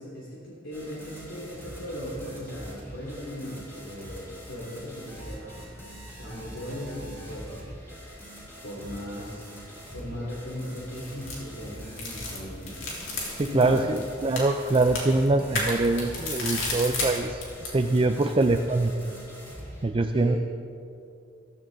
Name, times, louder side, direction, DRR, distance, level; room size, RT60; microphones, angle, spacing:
voice 1, 0.0-7.7 8.6-12.8 13.5-13.9 20.1-20.4, equal, 70° left, -5 dB, 2.9 m, -38 dB
sound 1, 0.7-19.8, equal, 15° left, 3.9 m, -43 dB
sound 2, 10.8-17.8, left 2 dB, 90° left, 3.6 m, -34 dB
voice 2, 13.3-18.9 19.8-20.4, right 2 dB, 25° right, 6 dB, 0.4 m, -24 dB
15.5 x 15.0 x 4.0 m, 2.5 s
head